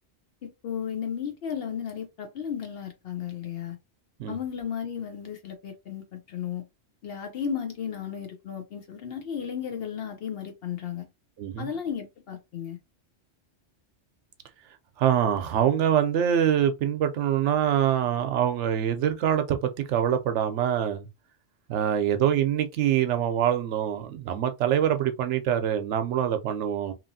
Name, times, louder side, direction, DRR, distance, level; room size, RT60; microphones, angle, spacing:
voice 1, 0.4-3.8 4.3-6.6 7.0-11.1 11.6-12.8, left 8 dB, 65° left, 0.7 m, -34 dB
voice 2, 15.0-21.1 21.7-26.9, right 10 dB, 90° right, 0.9 m, -24 dB
2.9 x 2.5 x 2.6 m
omnidirectional pair, 1.2 m